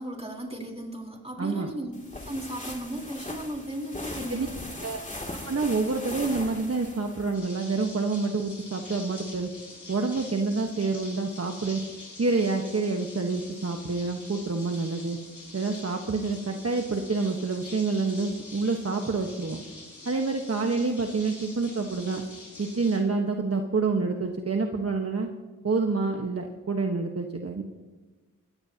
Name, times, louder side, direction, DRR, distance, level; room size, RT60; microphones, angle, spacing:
voice 1, 0.0-1.9 2.3-4.6, right 1 dB, 20° right, 1 dB, 3.8 m, -35 dB
voice 2, 1.4-1.7 4.3-4.5 4.8-5.0 5.4-9.5 9.9-11.8 12.2-15.2 15.5-19.6 20.0-22.2 22.6-25.3 25.6-27.6, right 3 dB, 50° right, 3 dB, 1.3 m, -27 dB
sound 1, 1.9-7.3, left 1 dB, 25° left, 2.7 m, -39 dB
sound 2, 7.3-23.0, left 2 dB, 65° left, 5.1 m, -45 dB
20.0 x 16.5 x 2.9 m, 1.2 s
cardioid pair, 40°, 32 cm